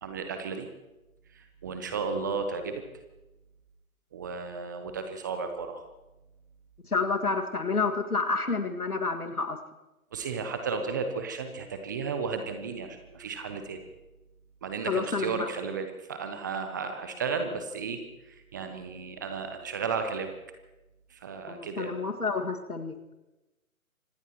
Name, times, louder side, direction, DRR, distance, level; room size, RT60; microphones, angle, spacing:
voice 1, 0.0-0.7 1.3-2.8 4.1-5.8 10.1-13.8 14.6-20.3 21.1-21.9, right 5 dB, 15° right, 7 dB, 0.6 m, -34 dB
voice 2, 6.9-9.6 14.9-15.5 21.5-23.0, left 4 dB, 85° left, 7 dB, 2.1 m, -29 dB
25.5 x 19.0 x 3.0 m, 1.0 s
figure-of-eight pair, 135°, 43 cm